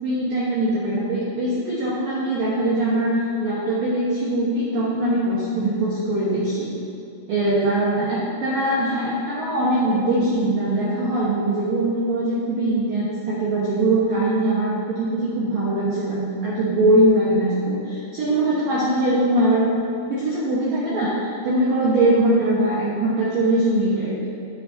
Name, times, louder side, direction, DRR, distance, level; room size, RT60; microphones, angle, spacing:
voice 1, 0.0-3.1 3.4-6.7 7.3-19.6 20.1-24.1, right 1 dB, 80° right, -7 dB, 1.9 m, -21 dB
13.0 x 7.6 x 2.7 m, 2.7 s
omnidirectional pair, 5.9 m